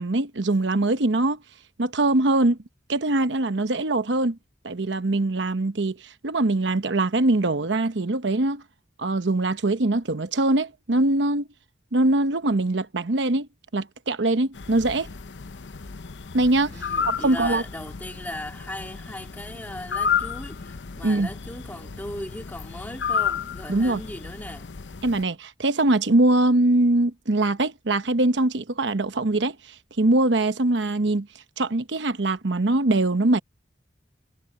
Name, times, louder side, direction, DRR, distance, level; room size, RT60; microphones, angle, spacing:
voice 1, 0.0-1.4 1.8-2.6 2.9-4.4 4.6-8.6 9.0-11.5 11.9-15.1 16.3-16.7 17.2-17.6 21.0-21.3 23.7-24.0 25.0-29.6 30.0-31.3 31.6-33.4, right 2 dB, 75° right, 1.0 m, -22 dB
sound 1, 14.5-25.2, left 7 dB, 75° left, 0.7 m, -32 dB
voice 2, 16.7-24.7, left 1 dB, 10° left, 3.3 m, -38 dB
head